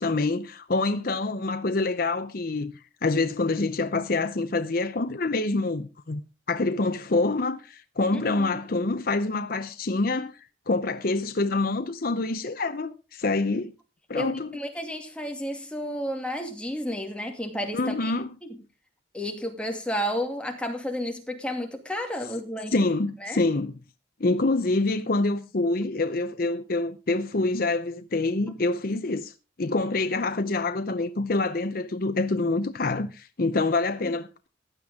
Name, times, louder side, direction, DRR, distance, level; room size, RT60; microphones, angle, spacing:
voice 1, 0.0-2.7 3.0-6.2 6.5-10.4 10.7-13.7 14.1-14.6 17.7-18.3 22.7-23.7 24.2-29.3 29.6-34.5, left 3 dB, 50° left, 0.7 m, -26 dB
voice 2, 8.1-8.7 14.1-18.1 19.1-22.9 23.2-23.4 33.5-33.6 34.0-34.1, equal, 5° left, 2.5 m, -32 dB
15.5 x 10.5 x 3.7 m
head